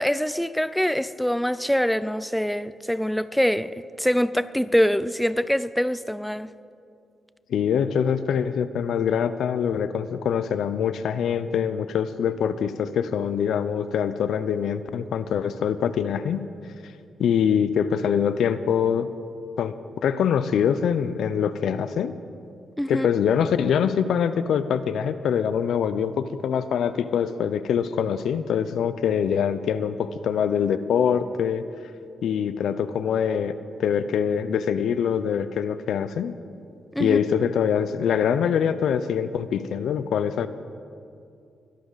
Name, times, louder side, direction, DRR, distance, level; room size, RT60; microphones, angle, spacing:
voice 1, 0.0-3.7 4.0-6.5 22.8-23.1 36.9-37.2, equal, 5° left, 0.5 m, -24 dB
voice 2, 7.5-16.4 17.2-19.1 19.6-22.1 22.9-31.6 32.2-33.5 33.8-36.4 37.0-40.5, left 8 dB, 80° left, 0.5 m, -24 dB
23.0 x 11.5 x 4.0 m
cardioid pair, 60°, 0 cm